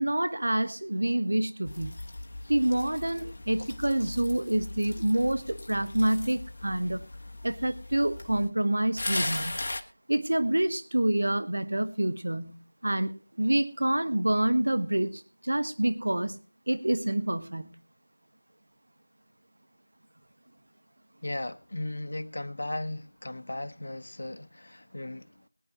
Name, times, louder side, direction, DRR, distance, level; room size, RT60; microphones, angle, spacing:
voice 1, 0.0-2.0 2.5-7.1 7.4-9.6 10.1-16.4 16.7-17.8, right 1 dB, 70° right, 1.3 m, -27 dB
sound 1, 1.7-8.5 9.0-9.8, left 2 dB, 35° left, 1.6 m, -38 dB
voice 2, 21.2-25.5, left 1 dB, 55° left, 1.0 m, -36 dB
22.5 x 9.5 x 3.0 m
figure-of-eight pair, 175°, 0 cm